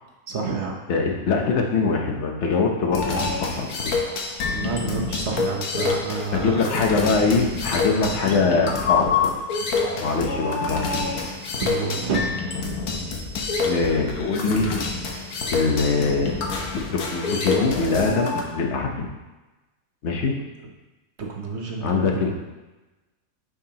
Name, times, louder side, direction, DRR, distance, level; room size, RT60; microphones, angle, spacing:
voice 1, 0.3-0.8 4.5-6.6 8.0-8.1 11.6-12.2 21.4-22.3, right 4 dB, 55° right, 0 dB, 1.1 m, -28 dB
voice 2, 0.9-3.9 6.3-9.3 10.0-11.1 13.6-14.7 15.5-16.4 16.9-19.1 20.0-20.3 21.8-22.3, left 4 dB, 55° left, 1 dB, 1.1 m, -23 dB
sound 1, 2.9-18.4, left 4 dB, 80° left, 1.3 m, -27 dB
8.7 x 4.8 x 2.8 m, 1.1 s
omnidirectional pair, 1.5 m